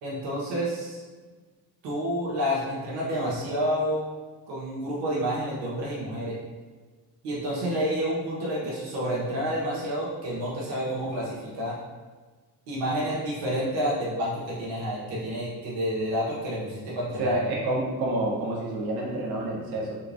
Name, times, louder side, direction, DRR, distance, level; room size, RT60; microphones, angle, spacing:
voice 1, 0.0-1.0 1.8-4.0 4.5-6.4 7.2-11.8 12.7-17.5, equal, 80° right, -6 dB, 1.0 m, -29 dB
voice 2, 17.2-20.0, right 1 dB, 60° right, -3 dB, 1.0 m, -28 dB
3.5 x 2.8 x 2.6 m, 1.4 s
supercardioid pair, 60°, 42 cm